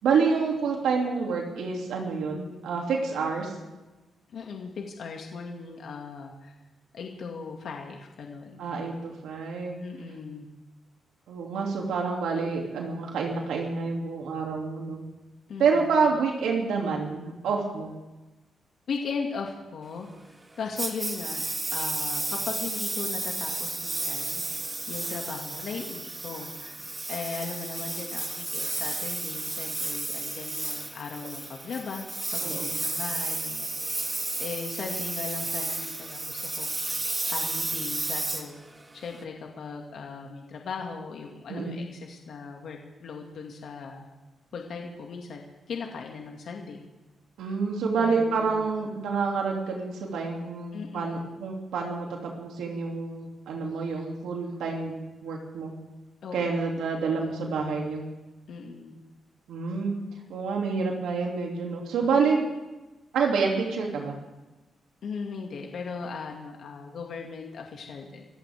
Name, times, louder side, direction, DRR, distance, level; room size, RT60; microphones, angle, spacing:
voice 1, 0.0-3.5 8.6-9.8 11.3-15.0 15.6-17.9 32.4-32.7 41.5-41.8 47.4-55.7 56.3-58.0 59.5-60.0 60.3-62.4 63.1-64.1, right 5 dB, 90° right, 0 dB, 2.8 m, -28 dB
voice 2, 4.3-6.5 6.9-8.7 9.8-10.5 15.5-16.1 18.9-20.1 20.6-21.4 21.7-24.4 24.9-32.0 32.3-33.9 34.4-37.0 37.3-38.6 38.9-44.1 44.5-46.8 48.0-48.7 50.7-51.4 56.2-56.8 58.5-59.0 65.0-68.3, left 5 dB, 65° left, 1 dB, 2.2 m, -38 dB
Engine, 20.8-39.2, right 2 dB, 25° right, 1.9 m, -32 dB
26.5 x 14.5 x 3.6 m, 1.1 s
cardioid pair, 95°, 0 cm